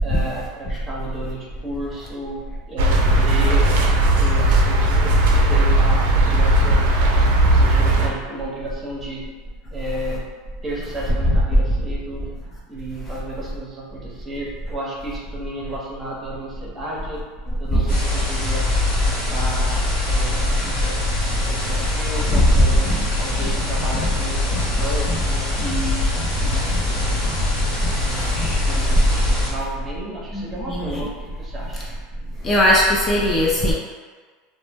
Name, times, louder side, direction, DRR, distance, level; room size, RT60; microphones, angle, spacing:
voice 1, 0.0-3.8 4.2-7.0 7.5-9.2 9.7-10.2 10.6-17.2 17.6-18.7 19.0-21.0 21.5-22.9 23.2-26.0 26.3-27.3 27.9-31.8, right 1 dB, 20° right, -4 dB, 0.7 m, -33 dB
sound 1, 2.8-8.1, right 1 dB, 80° right, 0.4 m, -16 dB
sound 2, 17.9-29.5, left 2 dB, 60° left, 1.2 m, -23 dB
sound 3, 22.2-28.7, left 1 dB, 75° left, 0.7 m, -34 dB
voice 2, 30.3-31.0 32.4-33.7, equal, 25° left, -3 dB, 0.4 m, -19 dB
2.0 x 2.0 x 3.3 m, 1.5 s
supercardioid pair, 130°, 0 cm